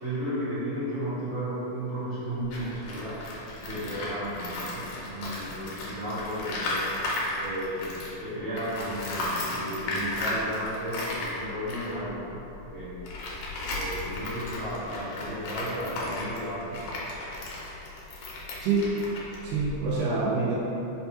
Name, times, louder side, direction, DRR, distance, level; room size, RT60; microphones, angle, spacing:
voice 1, 0.0-3.2 3.6-6.8 7.4-12.9 13.7-16.8, equal, 65° right, -13 dB, 1.6 m, -34 dB
Tools, 2.4-8.2 8.5-20.0, left 2 dB, 90° left, 1.7 m, -35 dB
voice 2, 18.6-18.9 19.4-20.5, right 4 dB, 90° right, -7 dB, 1.7 m, -26 dB
5.3 x 2.2 x 2.8 m, 2.9 s
omnidirectional pair, 4.0 m